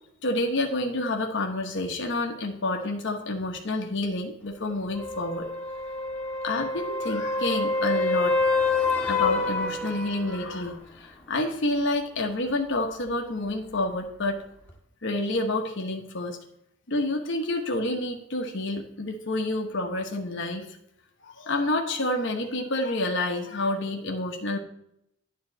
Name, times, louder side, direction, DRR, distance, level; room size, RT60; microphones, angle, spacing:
voice 1, 0.2-5.5 6.4-8.3 9.1-14.4 15.0-16.4 16.9-20.7 21.2-24.6, left 2 dB, 55° left, 2 dB, 1.1 m, -28 dB
sound 1, 4.9-10.6 14.7-14.8, left 3 dB, 5° left, 1.6 m, -27 dB
9.7 x 3.9 x 7.3 m, 0.75 s
head